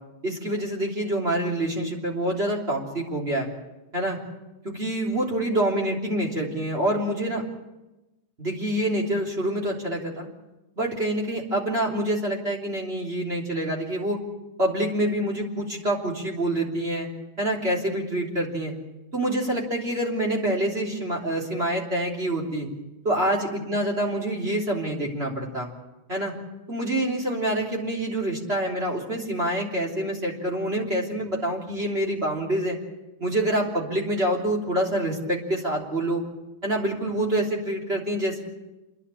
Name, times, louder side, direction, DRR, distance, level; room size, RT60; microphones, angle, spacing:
voice 1, 0.2-3.5 3.9-4.2 4.6-7.4 8.4-10.3 10.8-14.2 14.6-17.1 17.4-18.7 19.1-22.7 23.0-25.7 26.1-26.3 26.7-32.8 33.2-36.2 36.6-38.4, right 1 dB, 25° right, -1 dB, 3.6 m, -26 dB
29.5 x 10.5 x 8.6 m, 1.0 s
omnidirectional pair, 2.4 m